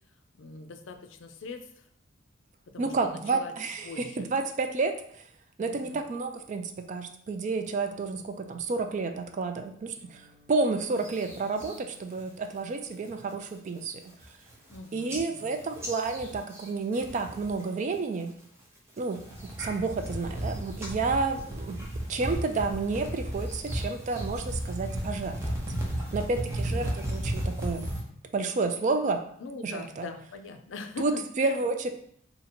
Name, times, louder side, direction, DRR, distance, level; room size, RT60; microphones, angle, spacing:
voice 1, 0.3-1.9 2.7-3.5 3.8-4.3 5.7-6.0 14.7-15.6 26.3-26.9 29.4-31.6, left 3 dB, 65° left, 7 dB, 0.4 m, -42 dB
voice 2, 2.8-5.0 5.6-14.0 14.9-18.3 19.0-19.2 19.6-25.6 26.1-27.9 28.3-29.2 29.6-30.1 31.0-31.9, right 3 dB, 40° right, 6 dB, 0.3 m, -30 dB
Guitar, 9.9-17.8, left 1 dB, 85° right, 1.4 m, -66 dB
sound 1, 11.0-11.8 12.2-12.6 12.9-13.3 13.8-13.9 14.1-14.8 15.1-17.7 17.9-18.4 19.0-28.0, right 1 dB, 15° right, 0.7 m, -34 dB
2.8 x 2.6 x 4.2 m, 0.68 s
head